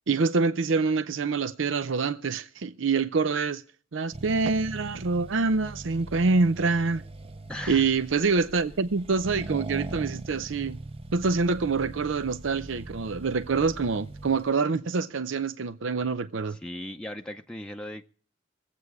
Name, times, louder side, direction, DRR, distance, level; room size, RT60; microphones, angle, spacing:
voice 1, 0.1-3.6 3.9-7.0 7.7-10.8 11.1-16.6, right 4 dB, 90° right, 0.6 m, -26 dB
Accelerating revving vroom, 4.1-14.5, right 2 dB, 30° right, 0.7 m, -41 dB
voice 2, 7.5-7.9 16.5-18.1, left 1 dB, 5° left, 0.6 m, -38 dB
22.5 x 8.3 x 4.7 m
head